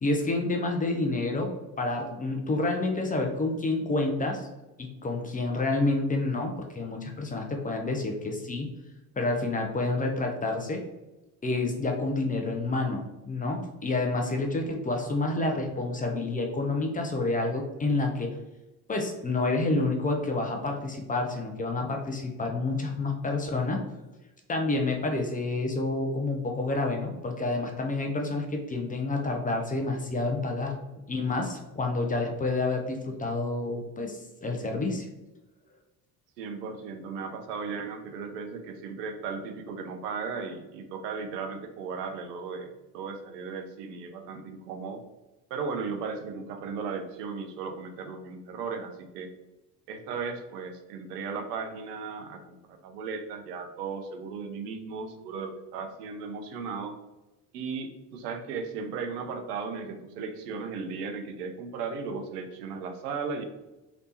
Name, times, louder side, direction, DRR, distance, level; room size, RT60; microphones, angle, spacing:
voice 1, 0.0-4.5 4.8-8.7 9.2-10.8 11.4-18.3 18.9-23.8 24.5-30.8 31.1-35.1, left 2 dB, 20° left, 2 dB, 0.5 m, -29 dB
voice 2, 36.4-45.0 45.5-49.3 49.9-57.0 57.5-63.4, right 5 dB, 80° right, 6 dB, 0.6 m, -36 dB
3.3 x 3.0 x 2.7 m, 1.0 s
hypercardioid pair, 65°, 46 cm